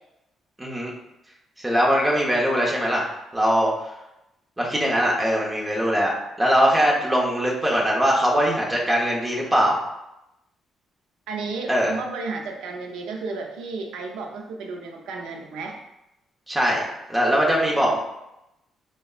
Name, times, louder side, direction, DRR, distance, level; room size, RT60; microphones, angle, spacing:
voice 1, 0.6-0.9 1.6-3.7 4.6-6.1 6.4-9.8 11.7-11.9 16.5-18.0, equal, 10° right, -3 dB, 0.9 m, -21 dB
voice 2, 11.3-15.8, right 4 dB, 90° right, 2 dB, 0.5 m, -33 dB
5.0 x 2.2 x 2.4 m, 0.89 s
cardioid pair, 90°, 0 cm